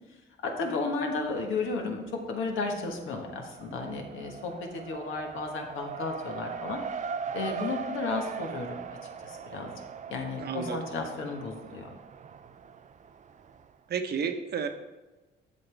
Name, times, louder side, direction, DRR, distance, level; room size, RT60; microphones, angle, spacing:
voice 1, 0.4-6.8 7.3-8.8 9.2-9.7 10.1-11.9, left 3 dB, 80° left, 2 dB, 1.4 m, -33 dB
Race car auto racing, 1.3-2.0 2.3-13.7, right 6 dB, 40° right, 0.4 m, -40 dB
voice 2, 10.4-10.9 13.9-14.7, right 6 dB, 55° right, 7 dB, 0.8 m, -31 dB
8.1 x 6.7 x 3.4 m, 1.1 s
cardioid pair, 90°, 20 cm